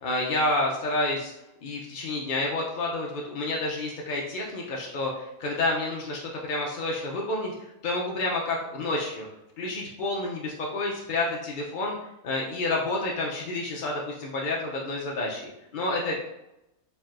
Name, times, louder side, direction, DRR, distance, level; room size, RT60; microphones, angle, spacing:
voice 1, 0.0-1.3 1.6-7.6 7.8-9.3 9.6-12.0 12.2-16.2, left 2 dB, 65° left, -1 dB, 0.4 m, -29 dB
4.4 x 3.2 x 2.4 m, 0.88 s
omnidirectional pair, 1.5 m